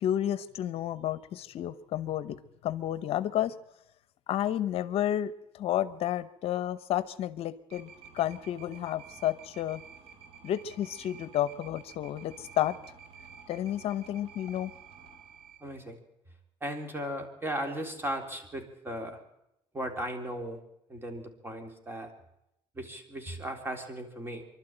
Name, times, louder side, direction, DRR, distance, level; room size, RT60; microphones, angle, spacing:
voice 1, 0.0-3.5 4.3-9.8 10.4-12.8 13.5-14.7, left 11 dB, 65° left, 15 dB, 0.8 m, -31 dB
sound 1, 7.7-15.6, right 7 dB, 70° right, 4.3 m, -51 dB
voice 2, 15.6-16.0 16.6-19.2 19.7-20.6 20.9-22.1 22.7-24.5, right 1 dB, 20° right, 5 dB, 3.6 m, -36 dB
24.5 x 12.0 x 9.0 m, 0.83 s
cardioid pair, 100°, 11 cm